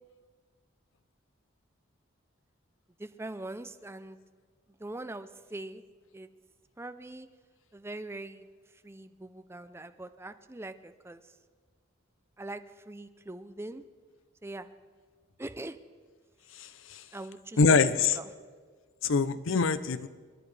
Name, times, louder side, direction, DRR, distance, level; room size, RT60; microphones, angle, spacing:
voice 1, 3.0-4.2 4.7-5.8 6.1-6.3 6.8-7.3 7.7-8.5 8.8-11.2 12.4-13.8 14.4-14.7 15.4-15.8 17.1-18.3, right 2 dB, 15° right, 10 dB, 0.5 m, -42 dB
voice 2, 16.6-17.0 17.6-18.2 19.0-20.1, left 4 dB, 75° left, 13 dB, 0.6 m, -24 dB
29.0 x 11.0 x 3.3 m, 1.6 s
head